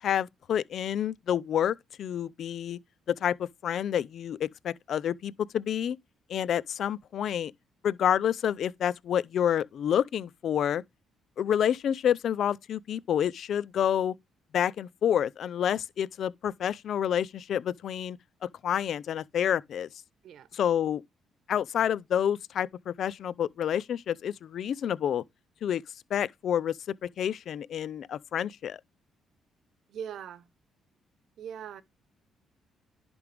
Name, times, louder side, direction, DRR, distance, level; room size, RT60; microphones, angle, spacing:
voice 1, 0.0-2.8 3.2-6.0 6.3-7.5 7.8-10.8 11.4-14.1 14.5-18.2 18.6-19.9 20.5-21.0 21.5-25.2 25.6-25.8 26.1-26.7 27.0-28.8, left 9 dB, 65° left, 0.5 m, -28 dB
voice 2, 20.2-20.6 29.9-30.5 31.4-31.8, right 8 dB, 70° right, 1.0 m, -42 dB
10.5 x 5.2 x 3.4 m
cardioid pair, 90°, 0 cm